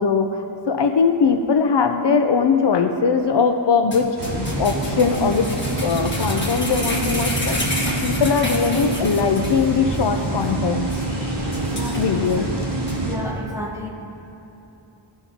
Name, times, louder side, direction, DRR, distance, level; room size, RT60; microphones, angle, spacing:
voice 1, 0.0-5.5 5.8-10.9 11.9-12.5, left 5 dB, 65° left, 6 dB, 0.6 m, -20 dB
sound 1, 3.9-9.6 9.9-10.0 10.4-10.5 10.9-11.1 11.5-12.3 12.9-13.0, left 1 dB, 25° left, 1.5 m, -29 dB
sound 2, 4.2-13.1, right 2 dB, 60° right, 2.1 m, -26 dB
voice 2, 11.7-12.0 12.3-12.5 13.0-13.9, equal, 5° right, -3 dB, 1.4 m, -32 dB
17.0 x 5.7 x 2.8 m, 2.9 s
wide cardioid pair, 90°, 46 cm